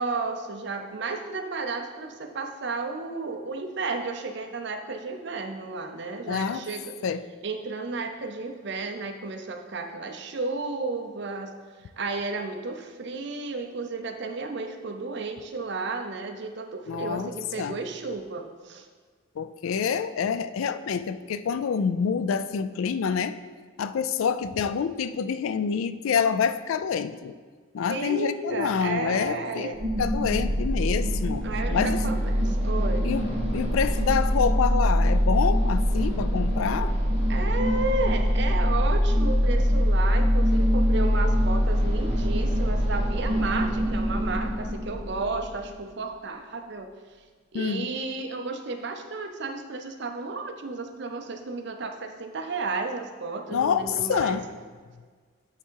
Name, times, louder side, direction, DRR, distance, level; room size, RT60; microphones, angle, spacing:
voice 1, 0.0-6.9 7.4-11.5 12.0-18.9 27.9-29.8 31.4-33.1 37.3-46.9 47.5-54.4, right 3 dB, 55° right, 5 dB, 0.6 m, -33 dB
voice 2, 6.3-6.6 7.0-7.2 16.9-17.3 17.6-17.8 19.4-23.4 23.8-27.4 27.7-31.5 31.7-32.0 33.0-33.3 33.5-37.0 47.5-47.9 53.5-54.5, left 6 dB, 80° left, 12 dB, 0.3 m, -27 dB
sound 1, 29.7-45.7, equal, 30° right, 1.2 m, -24 dB
8.2 x 3.6 x 4.6 m, 1.5 s
head